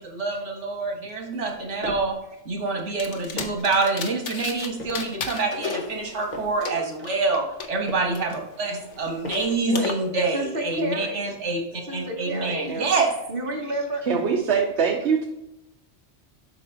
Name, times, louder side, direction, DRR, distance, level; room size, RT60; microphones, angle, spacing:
voice 1, 0.0-2.2 2.5-13.2, right 3 dB, 90° right, 1 dB, 1.7 m, -26 dB
sound 1, 1.4-2.2 2.9-3.8 4.4-5.1 5.8-6.7 7.4-8.2 8.9-9.7, left 1 dB, 40° left, 1.5 m, -40 dB
sound 2, 3.0-4.7 4.9-7.7 8.1-9.9, left 5 dB, 85° left, 1.2 m, -34 dB
voice 2, 10.3-11.4 11.9-12.7 13.3-14.0, right 1 dB, 50° right, -1 dB, 1.7 m, -30 dB
voice 3, 14.1-15.2, right 6 dB, 70° right, 1 dB, 1.1 m, -23 dB
8.4 x 5.9 x 2.7 m, 0.88 s
omnidirectional pair, 1.2 m